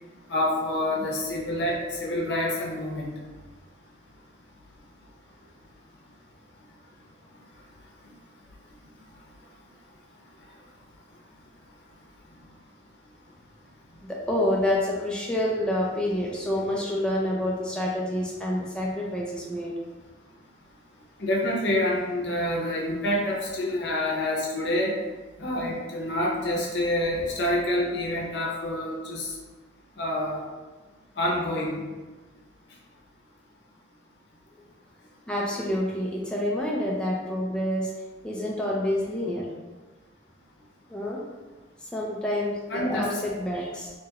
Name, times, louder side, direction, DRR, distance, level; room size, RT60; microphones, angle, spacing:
voice 1, 0.3-3.1 21.2-24.9 25.4-29.3 30.0-30.4 31.2-31.8 42.7-43.1, left 1 dB, 70° left, -2 dB, 0.7 m, -27 dB
voice 2, 14.0-19.8 35.3-37.9 38.2-39.5 40.9-41.2 41.8-43.9, left 1 dB, 5° left, -4 dB, 0.4 m, -28 dB
2.9 x 2.9 x 2.3 m, 1.3 s
head